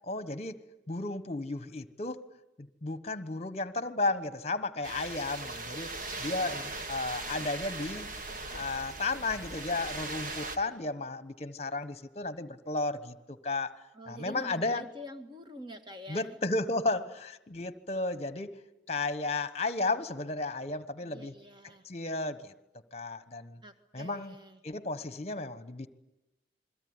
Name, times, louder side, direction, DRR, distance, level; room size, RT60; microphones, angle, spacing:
voice 1, 0.0-0.6 0.9-2.2 2.6-5.9 6.2-8.1 8.5-13.8 14.1-14.9 16.1-18.5 18.9-21.3 21.8-22.5 22.9-23.6 23.9-24.3 24.6-25.9, left 2 dB, 35° left, 13 dB, 1.2 m, -33 dB
sound 1, 4.8-10.6, right 3 dB, 50° right, 1.9 m, -39 dB
voice 2, 13.9-16.4 21.0-21.9 23.6-24.6, equal, 25° right, 6 dB, 1.9 m, -46 dB
28.0 x 22.0 x 9.7 m, 0.94 s
head